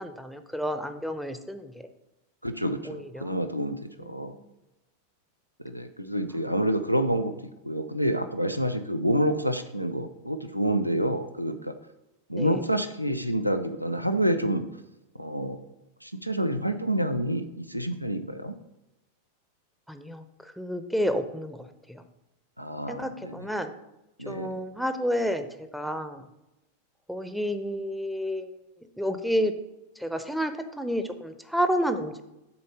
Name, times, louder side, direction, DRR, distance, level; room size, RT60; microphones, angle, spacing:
voice 1, 0.0-1.7 2.8-3.3 4.0-4.4 12.4-12.6 19.9-22.0 22.9-23.7 24.3-26.3 27.1-28.5 29.0-29.5 30.0-32.2, equal, ahead, 8 dB, 0.6 m, -30 dB
voice 2, 2.4-4.4 5.6-7.3 7.6-11.7 12.3-14.6 15.2-15.6 16.0-18.5 22.6-23.4 24.2-24.5, right 1 dB, 90° right, 9 dB, 0.5 m, -28 dB
7.0 x 4.1 x 6.5 m, 0.92 s
figure-of-eight pair, 90°, 0 cm